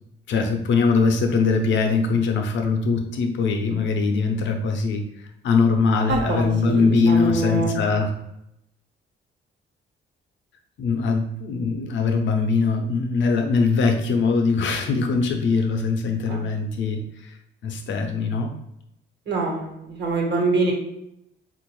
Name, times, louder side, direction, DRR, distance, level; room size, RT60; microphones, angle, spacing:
voice 1, 0.3-8.1 10.8-17.4 17.6-18.5, left 4 dB, 70° left, 4 dB, 0.6 m, -22 dB
voice 2, 6.1-7.8 16.3-16.4 19.3-20.7, right 3 dB, 60° right, -1 dB, 1.1 m, -24 dB
3.7 x 2.5 x 3.0 m, 0.81 s
cardioid pair, 90°, 20 cm